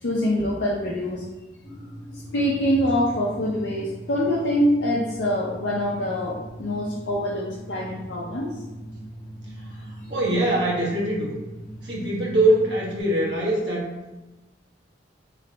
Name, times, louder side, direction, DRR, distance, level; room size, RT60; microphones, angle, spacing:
voice 1, 0.0-1.3 2.1-8.5, equal, 75° left, -4 dB, 0.6 m, -25 dB
sound 1, 1.6-13.0, right 1 dB, 20° left, 0.8 m, -40 dB
voice 2, 10.1-11.4 11.8-14.1, right 1 dB, 75° right, -5 dB, 1.3 m, -23 dB
3.2 x 3.2 x 4.0 m, 1.1 s
head